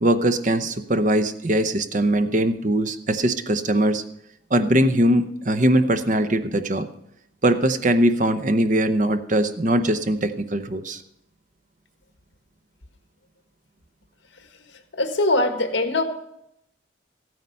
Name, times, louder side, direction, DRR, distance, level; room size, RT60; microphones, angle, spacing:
voice 1, 0.0-4.0 4.5-6.9 7.4-11.0, right 1 dB, 40° right, 9 dB, 0.8 m, -21 dB
voice 2, 14.9-16.0, left 2 dB, 75° left, 7 dB, 1.5 m, -22 dB
14.5 x 9.4 x 5.5 m, 0.79 s
head